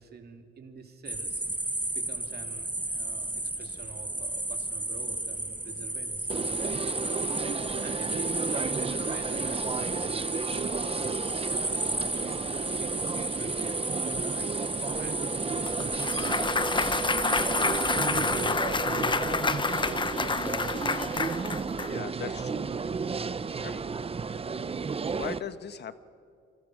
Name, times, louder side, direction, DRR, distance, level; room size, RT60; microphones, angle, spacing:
voice 1, 0.0-1.7 1.9-7.1 7.7-13.8 14.3-14.5 14.8-15.2 15.5-18.9, right 5 dB, 50° right, 5 dB, 2.8 m, -47 dB
sound 1, 1.1-18.5, right 1 dB, 10° right, 1.4 m, -33 dB
sound 2, 6.3-25.4, right 5 dB, 30° right, 0.8 m, -33 dB
Clapping / Cheering / Applause, 15.7-21.9, left 4 dB, 25° left, 0.9 m, -29 dB
voice 2, 21.8-22.7 23.6-23.8 25.1-26.0, left 8 dB, 60° left, 12 dB, 1.2 m, -39 dB
28.5 x 25.0 x 6.3 m, 2.3 s
cardioid pair, 90°, 20 cm